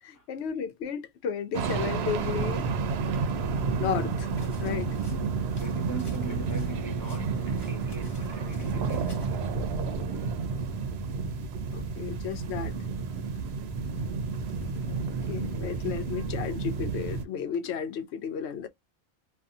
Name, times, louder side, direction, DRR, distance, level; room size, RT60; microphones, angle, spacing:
voice 1, 0.0-2.7 3.8-4.3 4.6-5.0 10.1-10.4 11.7-12.7 15.3-18.7, left 8 dB, 85° left, 0.9 m, -33 dB
sound 1, 1.5-17.2, right 4 dB, 80° right, 0.8 m, -31 dB
sound 2, 4.3-9.4, equal, 25° left, 0.9 m, -53 dB
voice 2, 5.6-9.7, right 3 dB, 20° right, 0.9 m, -41 dB
2.6 x 2.3 x 2.3 m
omnidirectional pair, 1.1 m